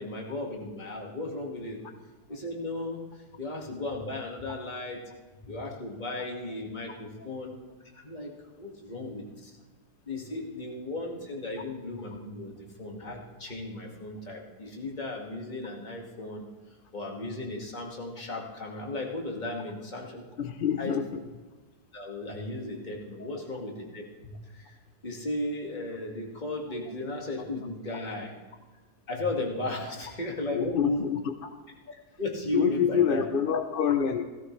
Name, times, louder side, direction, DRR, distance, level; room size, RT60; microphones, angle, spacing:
voice 1, 0.0-1.8 2.3-5.0 5.4-7.6 7.9-8.3 8.6-9.5 10.1-20.2 20.8-21.0 21.9-24.8 25.0-28.3 29.1-31.0 32.2-33.2, left 2 dB, 30° left, -1 dB, 2.1 m, -35 dB
voice 2, 20.4-21.2 23.2-23.3 30.5-31.5 32.5-34.2, left 8 dB, 45° left, 6 dB, 0.8 m, -27 dB
17.0 x 15.5 x 3.3 m, 1.2 s
omnidirectional pair, 1.7 m